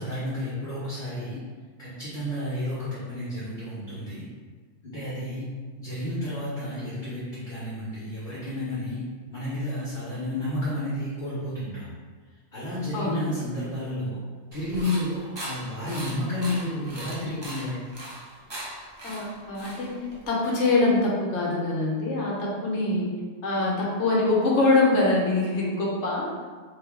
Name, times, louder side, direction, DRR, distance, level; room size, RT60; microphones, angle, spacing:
voice 1, 0.0-1.4 1.8-4.2 4.8-5.5 5.8-9.0 9.3-11.9 12.5-14.2 14.5-17.8, left 1 dB, 40° left, -11 dB, 1.0 m, -31 dB
voice 2, 12.9-13.4 19.0-19.9 20.3-23.1 23.4-26.3, left 2 dB, 65° left, -4 dB, 1.0 m, -24 dB
sound 1, 14.5-20.3, right 1 dB, 40° right, 0.4 m, -39 dB
3.1 x 2.3 x 3.5 m, 1.5 s
omnidirectional pair, 1.4 m